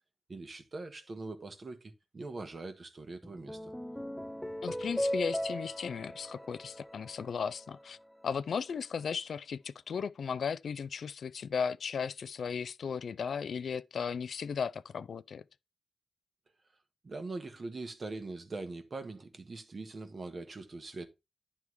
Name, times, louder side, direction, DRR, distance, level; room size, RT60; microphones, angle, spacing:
voice 1, 0.3-3.7 17.0-21.1, right 3 dB, 45° right, 1.3 m, -42 dB
sound 1, 3.2-7.8, equal, ahead, 0.4 m, -38 dB
voice 2, 4.6-8.0 8.2-15.4, left 6 dB, 70° left, 0.3 m, -36 dB
9.8 x 3.5 x 4.6 m
cardioid pair, 65°, 0 cm